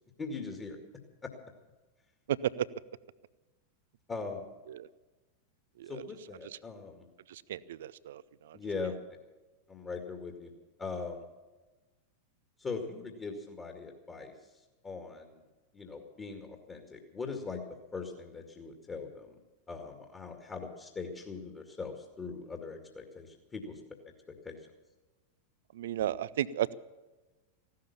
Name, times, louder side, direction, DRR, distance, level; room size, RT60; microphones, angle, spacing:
voice 1, 0.2-0.8 1.2-1.3 4.1-4.5 5.9-7.1 8.5-8.9 9.7-10.5 10.8-11.2 12.6-14.3 14.8-15.4 15.7-17.6 17.9-19.4 19.7-23.8 24.3-24.6, left 4 dB, 20° left, 3 dB, 2.2 m, -40 dB
voice 2, 7.5-8.2 25.8-26.7, right 11 dB, 60° right, 19 dB, 0.5 m, -33 dB
16.0 x 12.5 x 7.1 m, 1.2 s
figure-of-eight pair, 90°, 0 cm